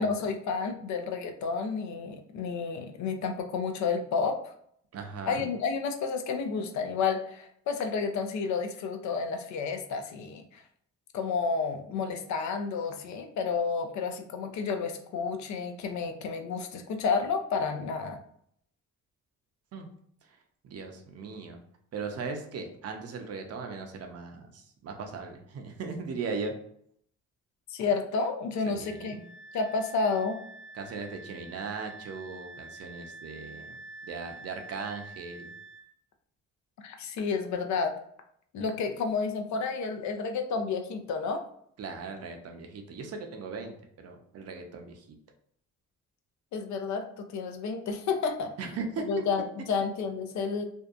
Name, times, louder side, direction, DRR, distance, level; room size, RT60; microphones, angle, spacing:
voice 1, 0.0-4.5 5.3-10.6 11.1-18.2 27.7-29.2 29.5-30.4 36.8-38.0 38.5-41.4 46.5-48.5 49.1-50.6, left 5 dB, 70° left, 5 dB, 0.5 m, -31 dB
voice 2, 4.9-5.5 19.7-19.9 20.2-20.4 20.6-21.6 21.9-26.5 28.7-29.2 30.7-33.7 34.0-35.5 41.8-45.1 48.6-49.0, right 4 dB, 55° right, 4 dB, 0.6 m, -38 dB
Wind instrument woodwind instrument, 28.8-35.9, right 2 dB, 15° left, 0.4 m, -47 dB
2.6 x 2.2 x 2.4 m, 0.67 s
cardioid pair, 90°, 30 cm